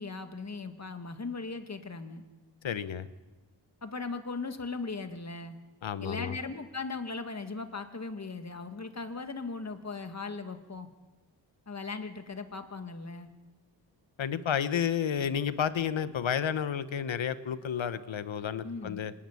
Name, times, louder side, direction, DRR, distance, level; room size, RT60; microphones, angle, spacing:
voice 1, 0.0-2.2 3.8-5.6 6.0-10.9 11.7-13.3 18.6-19.0, left 4 dB, 35° left, 8 dB, 1.7 m, -38 dB
voice 2, 2.6-3.1 5.8-6.4 14.2-19.1, left 8 dB, 75° left, 13 dB, 1.1 m, -31 dB
25.5 x 11.5 x 9.7 m, 1.2 s
wide cardioid pair, 115°, 46 cm